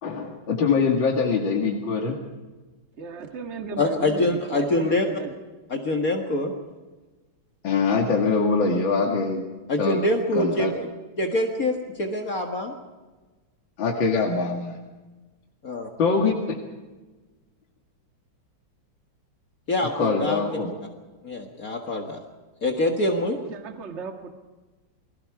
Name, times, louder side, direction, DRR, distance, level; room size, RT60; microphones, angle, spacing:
voice 1, 0.0-2.2 7.6-9.4 9.8-10.0 10.3-10.7 13.8-14.8 16.0-16.6 19.9-20.7, left 4 dB, 75° left, 1 dB, 2.8 m, -23 dB
voice 2, 3.0-5.3 23.4-24.3, right 4 dB, 35° right, 5 dB, 1.9 m, -35 dB
voice 3, 3.8-5.1 5.7-6.5 9.7-10.9 11.2-12.7 15.6-15.9 19.7-20.6 21.2-22.2 22.6-23.4, left 1 dB, 45° left, 3 dB, 2.1 m, -25 dB
29.5 x 21.0 x 4.8 m, 1.2 s
omnidirectional pair, 2.1 m